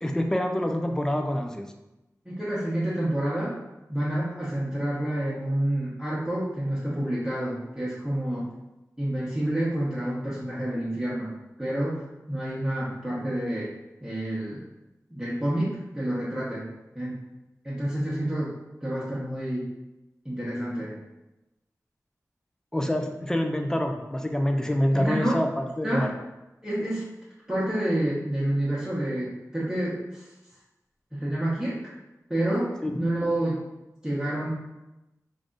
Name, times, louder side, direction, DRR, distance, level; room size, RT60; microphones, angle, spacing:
voice 1, 0.0-1.6 22.7-26.1 32.8-32.9, left 1 dB, 10° left, 4 dB, 0.4 m, -26 dB
voice 2, 2.2-3.5 3.9-8.5 9.0-11.3 11.6-13.7 14.0-14.6 15.1-16.6 16.9-17.2 17.6-18.5 18.8-19.7 20.2-20.9 24.9-25.4 25.8-26.1 26.6-27.0 27.5-30.3 31.1-31.8 32.3-33.6 34.0-34.5, right 1 dB, 10° right, -9 dB, 0.9 m, -28 dB
3.4 x 2.5 x 3.8 m, 0.98 s
wide cardioid pair, 70°, 6 cm